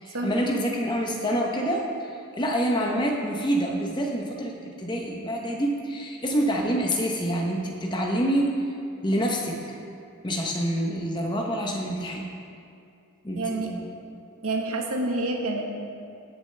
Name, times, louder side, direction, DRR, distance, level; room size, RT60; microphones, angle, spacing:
voice 1, 0.0-1.8 2.4-8.5 9.0-9.8 10.2-12.2 13.2-13.9, equal, 20° left, 0 dB, 0.9 m, -27 dB
voice 2, 13.3-13.7 14.4-15.8, right 2 dB, 80° right, 1 dB, 1.4 m, -28 dB
17.5 x 6.6 x 3.3 m, 2.4 s
head